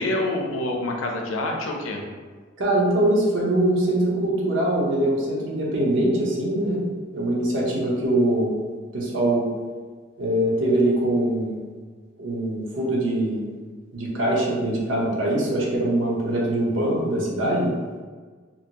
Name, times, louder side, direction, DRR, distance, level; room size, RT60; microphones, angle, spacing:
voice 1, 0.0-2.0, left 1 dB, 90° left, 1 dB, 0.5 m, -26 dB
voice 2, 2.6-6.8 7.1-8.5 8.9-9.5 10.2-11.6 12.2-13.4 13.9-17.7, right 1 dB, 70° right, -3 dB, 0.7 m, -23 dB
2.7 x 2.6 x 2.8 m, 1.5 s
head